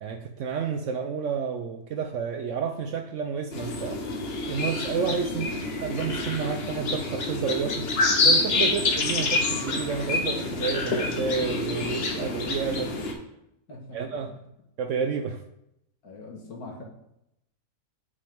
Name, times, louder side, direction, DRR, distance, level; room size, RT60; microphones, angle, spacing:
voice 1, 0.0-4.1 4.5-7.9 8.2-12.9 13.9-14.3 14.8-15.4, right 6 dB, 65° right, 6 dB, 0.8 m, -30 dB
sound 1, 3.5-13.1, left 3 dB, 45° left, 1.1 m, -27 dB
voice 2, 13.7-14.2 16.0-16.8, left 2 dB, 70° left, 0 dB, 1.9 m, -43 dB
7.6 x 6.1 x 3.5 m, 0.81 s
omnidirectional pair, 1.7 m